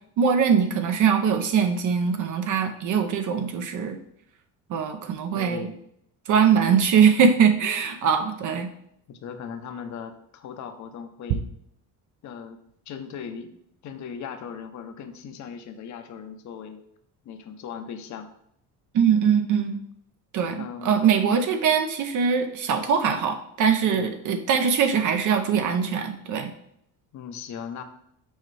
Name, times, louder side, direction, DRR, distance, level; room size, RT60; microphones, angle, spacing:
voice 1, 0.2-4.0 4.7-5.7 6.3-8.7 18.9-19.8 20.3-26.5, right 7 dB, 55° right, 6 dB, 0.7 m, -22 dB
voice 2, 5.3-5.8 6.7-6.8 9.1-11.4 12.2-12.6 12.9-13.5 13.8-16.8 17.2-18.3 20.6-21.1 23.9-24.1 27.1-27.8, left 7 dB, 50° left, 8 dB, 0.8 m, -38 dB
6.4 x 4.4 x 3.3 m, 0.72 s
cardioid pair, 125°, 37 cm